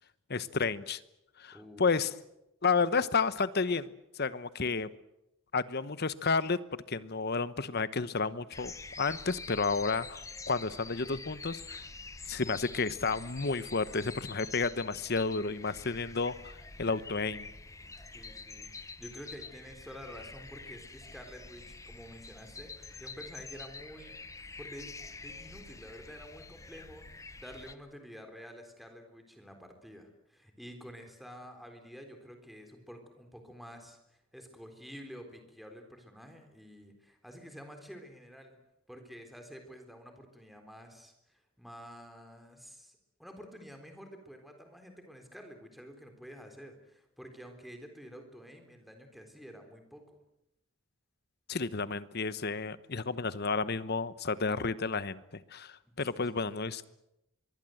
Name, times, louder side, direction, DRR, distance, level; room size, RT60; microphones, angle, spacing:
voice 1, 0.3-1.0 1.4-2.1 2.6-3.9 4.2-4.9 5.5-6.6 6.9-10.2 10.5-11.8 12.3-16.5 16.8-17.5 51.5-55.2 55.5-56.9, left 4 dB, 50° left, 15 dB, 1.0 m, -31 dB
voice 2, 1.5-2.1 17.8-24.2 24.6-24.9 25.2-38.6 38.9-50.2 55.9-56.4, equal, ahead, 5 dB, 3.9 m, -50 dB
sound 1, 8.5-27.7, left 3 dB, 15° left, 1.0 m, -47 dB
24.5 x 23.0 x 7.9 m, 0.86 s
head